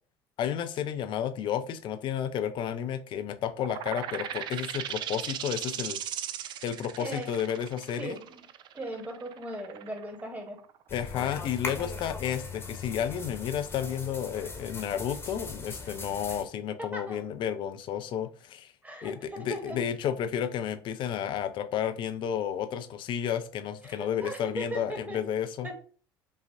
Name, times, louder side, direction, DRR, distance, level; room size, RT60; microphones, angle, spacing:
voice 1, 0.4-6.0 6.6-8.2 10.9-18.7 19.0-25.7, left 9 dB, 45° left, 9 dB, 0.5 m, -32 dB
sound 1, 3.6-10.9, right 10 dB, 40° right, 0.3 m, -38 dB
voice 2, 7.0-7.3 8.0-8.4 8.7-10.6 16.3-16.4 16.8-17.2 18.8-19.9 23.8-25.2 25.6-25.7, right 1 dB, 15° right, 3 dB, 1.3 m, -38 dB
sound 2, 10.9-16.4, left 4 dB, 20° left, 1.0 m, -39 dB
5.3 x 2.4 x 2.5 m, 0.41 s
figure-of-eight pair, 65°, 12 cm